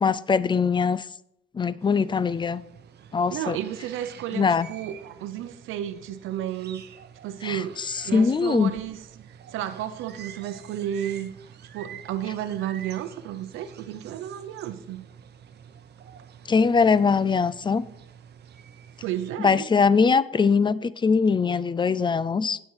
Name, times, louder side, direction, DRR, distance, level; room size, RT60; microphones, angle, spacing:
voice 1, 0.0-1.1 1.5-2.6 3.1-3.6 4.3-4.7 7.4-8.7 16.5-17.9 19.4-22.6, left 5 dB, 25° left, 19 dB, 0.4 m, -22 dB
sound 1, 1.8-19.3, right 8 dB, 55° right, 0.8 m, -48 dB
voice 2, 3.3-6.8 7.2-7.8 8.0-11.3 11.7-15.1 19.0-19.7, right 11 dB, 90° right, 10 dB, 0.7 m, -32 dB
9.3 x 7.5 x 4.7 m, 0.77 s
cardioid pair, 90°, 20 cm